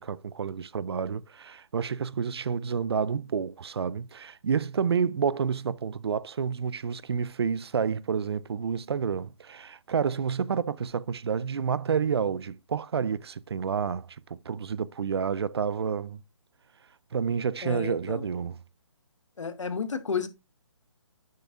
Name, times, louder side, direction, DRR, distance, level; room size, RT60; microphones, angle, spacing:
voice 1, 0.0-16.2 17.1-18.6, right 6 dB, 55° right, 0.4 m, -29 dB
voice 2, 17.6-18.2 19.4-20.3, left 6 dB, 75° left, 1.6 m, -32 dB
10.5 x 6.7 x 2.4 m
hypercardioid pair, 165°, 16 cm